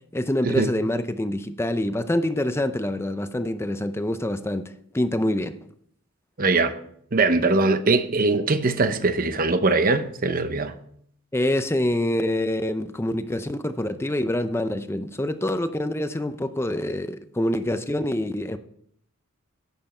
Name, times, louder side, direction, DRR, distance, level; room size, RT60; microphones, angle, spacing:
voice 1, 0.1-5.6 11.3-18.6, left 1 dB, 10° left, 0.5 m, -26 dB
voice 2, 6.4-6.8 7.1-10.7, right 3 dB, 40° right, 0.8 m, -21 dB
11.5 x 9.2 x 4.4 m
head